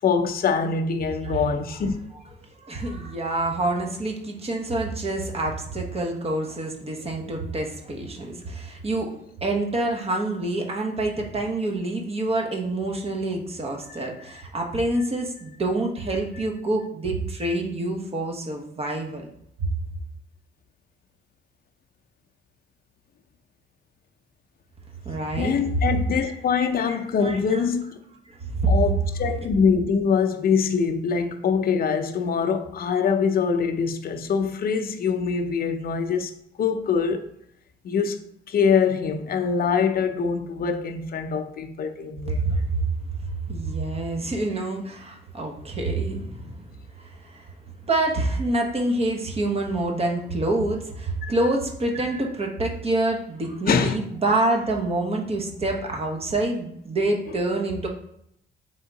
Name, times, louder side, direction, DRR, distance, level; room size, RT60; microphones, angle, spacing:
voice 1, 0.0-2.0 25.4-28.0 28.7-36.3 36.6-37.2 37.8-38.2 38.5-42.4 51.2-51.3 53.7-54.0, left 6 dB, 50° left, 0.6 m, -24 dB
voice 2, 2.6-9.1 9.4-19.3 25.0-25.6 26.1-26.3 26.9-27.0 27.2-27.6 28.6-28.7 42.3-42.6 43.5-46.6 47.3-47.4 47.9-57.9, right 2 dB, 30° right, 1.1 m, -27 dB
3.6 x 3.6 x 3.9 m
cardioid pair, 90°, 20 cm